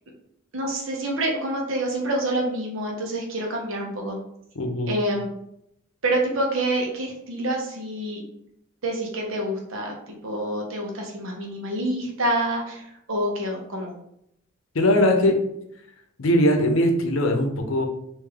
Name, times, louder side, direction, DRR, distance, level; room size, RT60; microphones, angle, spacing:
voice 1, 0.5-4.2 4.9-5.2 6.0-8.2 8.8-13.9, right 1 dB, 70° right, 0 dB, 0.9 m, -27 dB
voice 2, 4.6-5.0 14.7-15.3 16.2-17.9, left 1 dB, 80° left, 4 dB, 0.7 m, -20 dB
3.6 x 2.6 x 3.4 m, 0.75 s
head